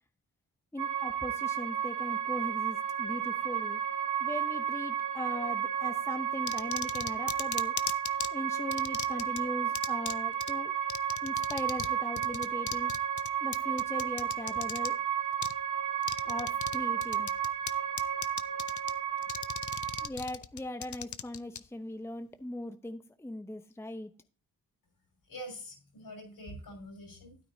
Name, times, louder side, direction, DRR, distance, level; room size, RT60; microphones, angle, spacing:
voice 1, 0.7-3.8 4.2-7.8 8.3-10.7 11.2-12.9 13.4-15.0 16.2-17.3 20.0-24.1, left 1 dB, 5° left, 0.8 m, -39 dB
sound 1, 0.8-20.1, right 9 dB, 55° right, 2.0 m, -32 dB
sound 2, 6.5-8.3 8.7-9.4 9.7-10.1 10.4-10.5 10.9-11.9 12.2-14.9 15.4-15.5 16.0-16.8 17.0-17.7 18.0-18.9 19.2-21.6, left 9 dB, 55° left, 0.6 m, -37 dB
voice 2, 25.3-27.4, equal, 70° left, 5.7 m, -45 dB
12.5 x 9.2 x 2.8 m
cardioid pair, 55°, 36 cm